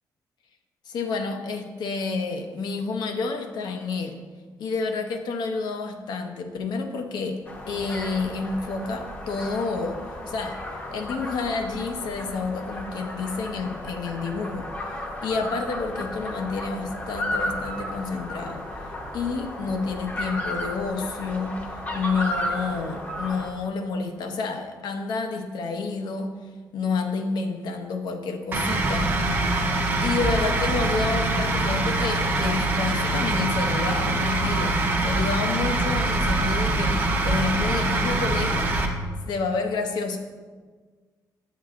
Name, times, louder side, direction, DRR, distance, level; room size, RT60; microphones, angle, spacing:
voice 1, 0.9-4.2 4.6-7.4 7.7-10.0 10.3-10.6 10.9-18.6 19.1-21.6 21.9-26.3 26.7-29.1 30.0-38.7 39.3-40.2, left 4 dB, 80° left, 5 dB, 0.7 m, -29 dB
sound 1, 7.5-23.5, left 1 dB, 25° left, 0.7 m, -34 dB
sound 2, 28.5-38.9, right 2 dB, 30° right, 0.6 m, -24 dB
7.3 x 7.3 x 2.4 m, 1.5 s
wide cardioid pair, 165°, 7 cm